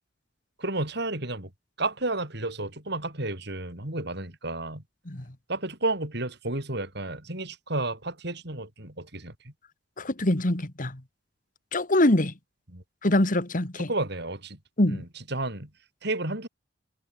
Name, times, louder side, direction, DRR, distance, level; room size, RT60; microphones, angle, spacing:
voice 1, 0.6-1.5 1.8-4.8 5.5-9.5 12.7-12.8 13.9-14.6 14.9-15.7 16.0-16.5, right 2 dB, 65° right, 6.2 m, -32 dB
voice 2, 10.0-11.0 11.7-12.3 13.0-13.9 14.8-15.0, left 1 dB, 45° left, 2.2 m, -24 dB
head